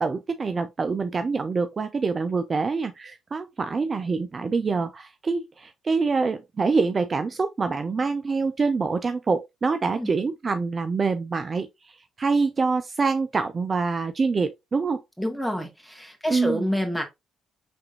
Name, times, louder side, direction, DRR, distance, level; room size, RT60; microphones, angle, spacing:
voice 1, 0.0-11.7 12.2-15.0 16.3-16.7, right 4 dB, 40° right, 0.5 m, -25 dB
voice 2, 15.2-17.0, equal, 5° right, 1.9 m, -28 dB
5.2 x 3.5 x 2.8 m
hypercardioid pair, 50°, 0 cm